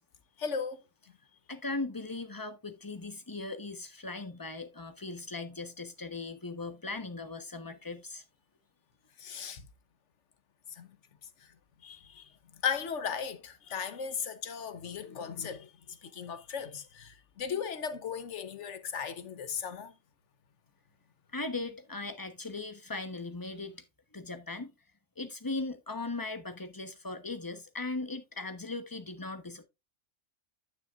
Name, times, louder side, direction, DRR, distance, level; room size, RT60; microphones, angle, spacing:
voice 1, 0.4-0.8 9.2-9.6 10.8-10.9 11.8-12.3 12.6-19.9, left 6 dB, 70° left, 1.3 m, -36 dB
voice 2, 1.5-8.2 21.3-23.8 24.1-24.7 25.2-29.6, left 3 dB, 15° left, 1.0 m, -38 dB
10.0 x 9.2 x 2.5 m
omnidirectional pair, 1.3 m